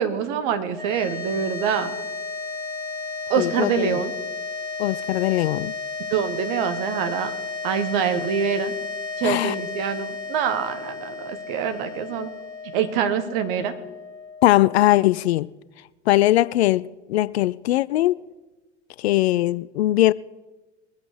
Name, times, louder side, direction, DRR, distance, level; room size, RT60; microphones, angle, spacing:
voice 1, 0.0-1.9 3.3-4.1 6.1-7.3 7.6-8.7 9.2-12.3 12.7-13.7, right 7 dB, 50° right, 1.5 m, -25 dB
sound 1, 0.7-15.1, left 4 dB, 25° right, 4.2 m, -33 dB
voice 2, 3.4-4.0 4.8-5.7 9.2-9.6 14.4-15.5 16.1-18.2 19.0-20.1, left 15 dB, 60° left, 0.5 m, -20 dB
22.0 x 8.1 x 4.9 m
figure-of-eight pair, 75°, 36 cm